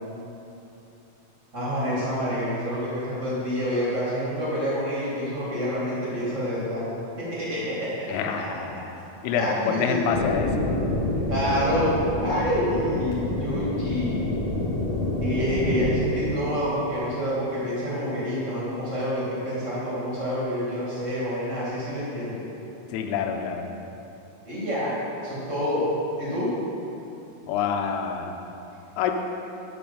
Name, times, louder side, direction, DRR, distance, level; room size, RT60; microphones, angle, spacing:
voice 1, 1.5-6.8 7.2-8.0 8.4-8.6 9.3-10.0 11.1-11.9 12.2-14.4 15.2-22.4 24.4-25.9 26.2-26.5, equal, 25° right, -8 dB, 1.7 m, -28 dB
voice 2, 8.1-8.7 9.2-10.5 22.9-23.7 27.5-28.3 29.0-29.1, left 7 dB, 90° left, 4 dB, 2.6 m, -26 dB
sound 1, 10.1-15.9, left 2 dB, 60° left, 1.4 m, -27 dB
8.5 x 6.9 x 5.2 m, 2.9 s
omnidirectional pair, 4.5 m